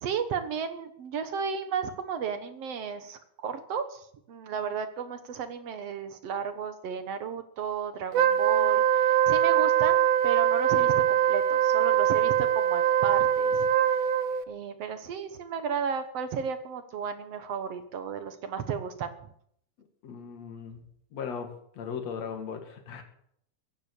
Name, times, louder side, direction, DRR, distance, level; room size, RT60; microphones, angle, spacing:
voice 1, 0.0-13.7 14.5-19.2, right 6 dB, 60° right, 10 dB, 2.1 m, -34 dB
Wind instrument woodwind instrument, 8.1-14.4, right 10 dB, 85° right, 2.3 m, -23 dB
voice 2, 20.0-20.8 21.1-21.5 21.8-23.0, left 6 dB, 60° left, 5 dB, 3.3 m, -37 dB
16.5 x 10.0 x 8.7 m, 0.69 s
omnidirectional pair, 3.5 m